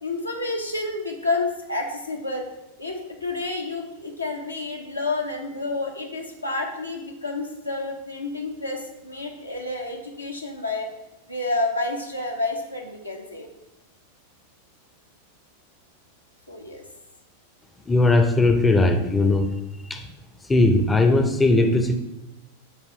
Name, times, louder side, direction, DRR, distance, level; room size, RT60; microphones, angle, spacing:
voice 1, 0.0-2.5 2.8-10.9 11.3-13.5 16.5-16.8, left 2 dB, 85° left, 0 dB, 0.9 m, -29 dB
voice 2, 17.9-19.5 19.9-20.1 20.5-22.0, left 2 dB, 10° left, 6 dB, 0.6 m, -19 dB
7.8 x 3.0 x 4.3 m, 0.94 s
figure-of-eight pair, 90°, 0 cm